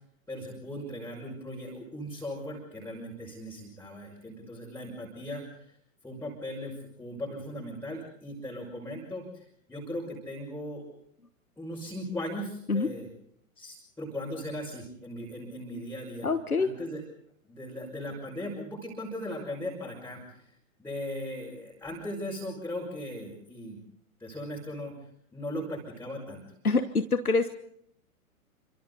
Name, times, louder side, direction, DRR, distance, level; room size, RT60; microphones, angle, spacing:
voice 1, 0.3-5.8 6.0-10.8 11.6-13.1 13.6-16.3 16.6-17.0 17.4-20.4 20.8-23.8 24.2-24.9 25.3-26.4, left 1 dB, 5° left, -3 dB, 5.9 m, -38 dB
voice 2, 16.2-16.7 26.6-27.5, left 3 dB, 85° left, 10 dB, 1.4 m, -25 dB
29.0 x 26.5 x 4.1 m, 0.69 s
figure-of-eight pair, 105°, 43 cm